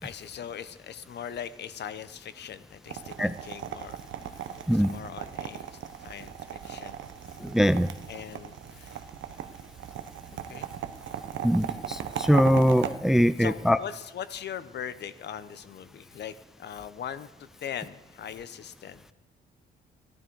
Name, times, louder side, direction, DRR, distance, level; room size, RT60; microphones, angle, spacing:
voice 1, 0.0-7.0 8.1-9.0 10.5-10.7 13.4-19.1, left 9 dB, 60° left, 14 dB, 0.8 m, -40 dB
sound 1, 2.9-12.9, right 9 dB, 75° right, 0.9 m, -38 dB
voice 2, 7.4-7.9 11.4-13.8, equal, ahead, 15 dB, 0.4 m, -22 dB
14.5 x 12.0 x 4.7 m, 1.1 s
cardioid pair, 90°, 20 cm